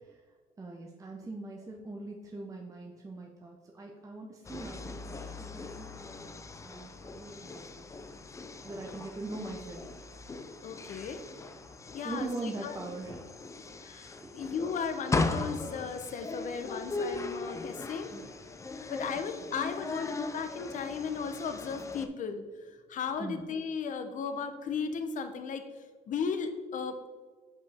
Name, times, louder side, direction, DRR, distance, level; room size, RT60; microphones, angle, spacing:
voice 1, 0.6-6.4 6.6-7.9 8.6-9.8 10.8-10.9 12.0-13.2 14.2-14.3 18.1-18.3 19.1-19.2 23.2-23.4, right 2 dB, 20° right, 0 dB, 0.7 m, -42 dB
sound 1, 4.4-22.1, left 3 dB, 20° left, 0.4 m, -39 dB
voice 2, 10.6-11.2 11.9-12.8 13.8-18.1 18.9-25.6 26.1-27.1, left 6 dB, 50° left, 8 dB, 0.7 m, -36 dB
6.2 x 5.2 x 3.5 m, 1.4 s
cardioid pair, 110°, 17 cm